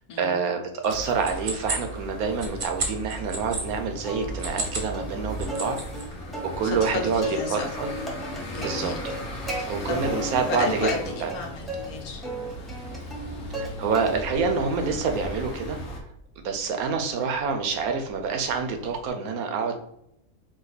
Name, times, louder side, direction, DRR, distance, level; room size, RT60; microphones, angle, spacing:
voice 1, 0.0-5.8 6.6-7.9 8.6-8.9 9.7-10.9 11.2-11.3 13.6-15.8 16.4-19.8, right 5 dB, 80° right, 5 dB, 1.2 m, -27 dB
sound 1, 0.8-3.6 4.3-4.9 5.2-6.0, right 3 dB, 45° right, 0.9 m, -32 dB
sound 2, 0.9-16.0, equal, 65° left, 1.4 m, -37 dB
Plucked string instrument, 4.0-4.7 4.9-5.1 5.5-7.5 7.8-9.6 10.0-10.6 10.9-11.9 12.2-13.7 13.9-14.4 14.9-19.1, right 1 dB, ahead, 0.8 m, -36 dB
voice 2, 6.6-7.7 8.5-9.0 9.5-12.2, left 3 dB, 80° left, 2 dB, 1.4 m, -32 dB
5.1 x 2.3 x 4.0 m, 0.75 s
omnidirectional pair, 1.5 m